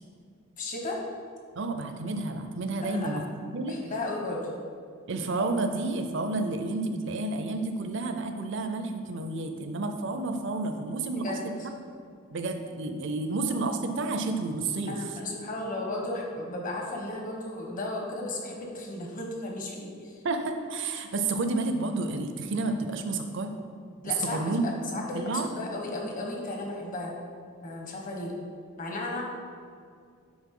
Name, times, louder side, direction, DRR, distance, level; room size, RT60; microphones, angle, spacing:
voice 1, 0.6-1.0 2.8-3.2 3.7-4.5 11.1-11.7 14.9-20.2 24.0-27.1 27.6-28.3 28.8-29.2, left 2 dB, 40° left, 0 dB, 1.2 m, -34 dB
voice 2, 1.6-3.2 3.5-3.8 5.1-11.5 12.3-15.0 20.2-23.5 24.2-24.7 25.1-25.5, right 3 dB, 60° right, 6 dB, 0.6 m, -30 dB
9.7 x 3.9 x 3.8 m, 2.2 s
head